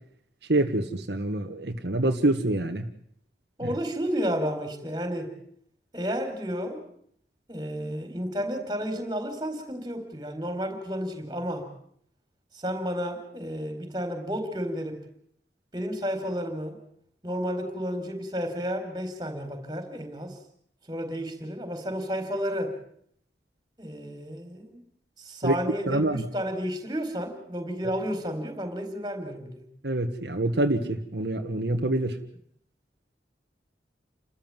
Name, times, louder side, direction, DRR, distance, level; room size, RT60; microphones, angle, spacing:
voice 1, 0.5-2.9 25.4-25.6 25.9-26.2 29.8-32.2, right 1 dB, 70° right, 4 dB, 1.6 m, -26 dB
voice 2, 3.6-5.3 5.9-6.8 7.5-11.7 12.5-15.0 15.7-16.8 17.2-20.4 20.9-22.8 23.8-24.8 25.2-29.7, equal, 20° right, 7 dB, 4.2 m, -32 dB
29.5 x 14.0 x 9.1 m, 0.66 s
head